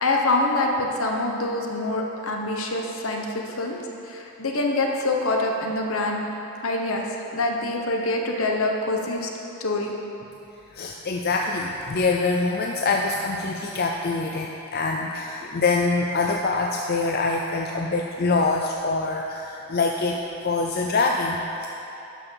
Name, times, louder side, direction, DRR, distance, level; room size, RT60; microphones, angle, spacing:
voice 1, 0.0-3.8 4.0-6.2 6.6-7.1 7.3-9.3 9.6-9.9, left 2 dB, 70° left, 1 dB, 1.1 m, -25 dB
voice 2, 10.7-21.7, left 3 dB, 45° left, 1 dB, 0.5 m, -25 dB
12.0 x 5.9 x 5.8 m, 3.0 s
head